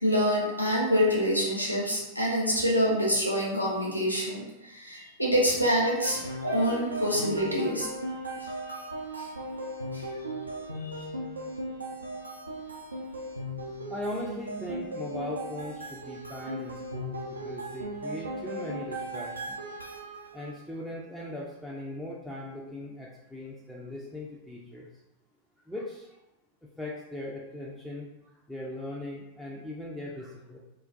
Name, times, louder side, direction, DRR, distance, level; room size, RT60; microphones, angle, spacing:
voice 1, 0.0-7.9 8.4-8.5 9.2-9.3 9.9-10.0 10.8-11.0, equal, 85° left, -5 dB, 0.6 m, -26 dB
sound 1, 5.8-20.5, right 1 dB, 80° right, 0.4 m, -37 dB
voice 2, 13.9-19.6 20.3-24.9 25.7-26.2 26.8-28.1 28.5-30.6, left 1 dB, ahead, -5 dB, 0.3 m, -39 dB
2.3 x 2.1 x 2.5 m, 0.94 s
figure-of-eight pair, 90°, 0 cm